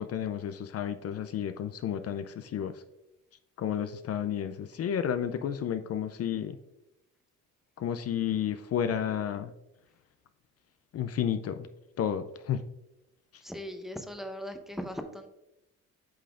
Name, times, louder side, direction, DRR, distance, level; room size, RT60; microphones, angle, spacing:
voice 1, 0.0-2.8 3.6-6.6 7.8-9.5 10.9-11.6 12.0-12.6, left 9 dB, 55° left, 9 dB, 0.5 m, -31 dB
voice 2, 13.4-15.3, equal, ahead, 6 dB, 0.7 m, -39 dB
8.5 x 5.6 x 2.4 m, 0.89 s
cardioid pair, 90°, 30 cm